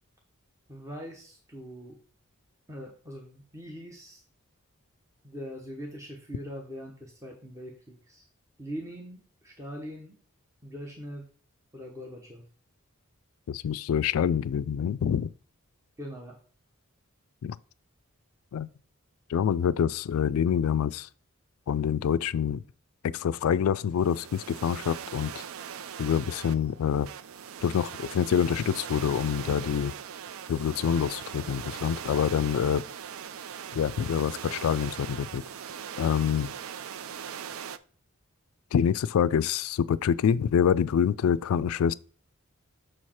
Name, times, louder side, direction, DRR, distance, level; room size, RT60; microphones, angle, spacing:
voice 1, 0.7-2.0 2.7-4.2 5.2-8.3 8.6-10.2 10.6-11.3 11.7-12.5 16.0-16.4, equal, 15° right, 0.9 m, -42 dB
voice 2, 13.5-15.3 17.4-17.6 18.5-18.7 19.3-21.1 21.7-22.6 23.0-25.3 26.0-27.1 27.6-29.9 30.5-32.8 33.7-35.4 36.0-36.5 38.7-41.9, left 8 dB, 80° left, 0.3 m, -26 dB
sound 1, 24.0-37.8, right 8 dB, 70° right, 0.4 m, -40 dB
6.3 x 4.7 x 4.3 m
head